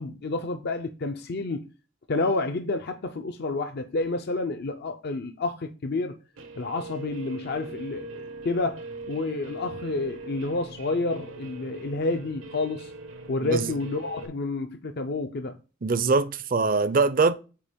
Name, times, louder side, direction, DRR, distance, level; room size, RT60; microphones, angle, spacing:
voice 1, 0.0-1.7 2.1-6.2 6.6-12.9 13.3-15.6, left 3 dB, 55° left, 0.6 m, -29 dB
Guitar, 6.4-14.3, right 3 dB, 80° right, 1.1 m, -41 dB
voice 2, 13.4-13.8 15.8-17.3, right 4 dB, 45° right, 0.6 m, -23 dB
8.5 x 2.9 x 5.1 m
head